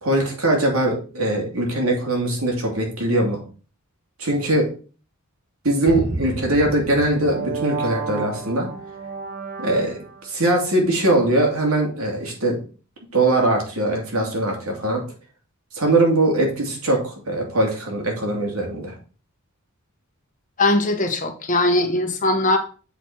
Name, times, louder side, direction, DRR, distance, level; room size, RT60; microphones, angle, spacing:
voice 1, 0.0-3.4 4.2-4.7 5.6-8.7 9.6-12.6 13.1-15.0 15.7-18.9, right 2 dB, 80° right, 1 dB, 2.6 m, -21 dB
sound 1, 5.9-10.3, right 3 dB, 40° right, 0.8 m, -31 dB
voice 2, 20.6-22.6, left 2 dB, 35° left, 5 dB, 1.2 m, -20 dB
8.0 x 4.7 x 4.6 m, 0.38 s
head